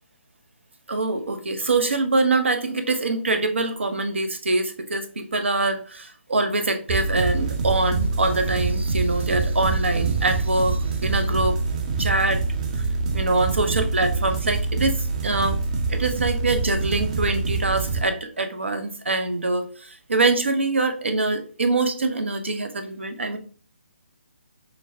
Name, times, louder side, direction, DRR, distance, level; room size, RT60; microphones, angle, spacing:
voice 1, 0.9-11.6 12.0-12.4 13.1-15.6 15.9-23.4, right 2 dB, 65° right, 7 dB, 0.7 m, -24 dB
sound 1, 6.9-18.0, right 4 dB, 30° right, 0.6 m, -25 dB
6.1 x 2.2 x 2.7 m, 0.42 s
figure-of-eight pair, 140°, 7 cm